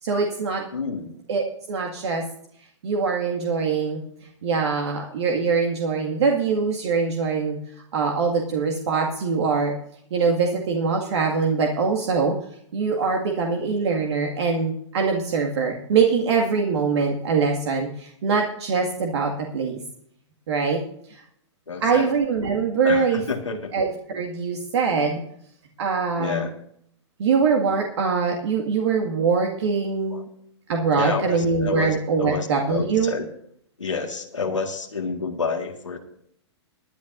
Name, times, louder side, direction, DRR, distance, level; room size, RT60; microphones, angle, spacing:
voice 1, 0.0-0.6 1.3-2.2 2.8-4.0 4.4-7.6 7.9-9.7 10.1-12.3 12.7-19.8 20.5-20.8 21.1-21.2 21.8-23.2 23.7-25.2 25.8-26.4 27.2-30.3 30.7-33.1, right 5 dB, 65° right, 1 dB, 2.0 m, -23 dB
voice 2, 0.7-1.1 21.7-22.1 22.8-23.7 26.2-26.5 30.1-30.2 30.9-33.3 33.8-36.0, left 4 dB, 90° left, 1 dB, 1.9 m, -29 dB
23.0 x 10.5 x 2.6 m, 0.68 s
hypercardioid pair, 115°, 15 cm